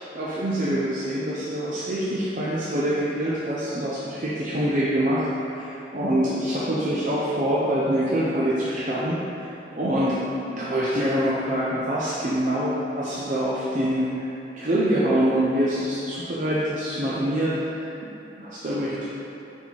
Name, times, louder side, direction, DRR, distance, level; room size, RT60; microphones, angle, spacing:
voice 1, 0.1-9.4 9.8-10.2 10.6-14.3 14.5-19.0, right 1 dB, 45° right, -8 dB, 0.6 m, -25 dB
5.4 x 4.2 x 4.6 m, 2.8 s
head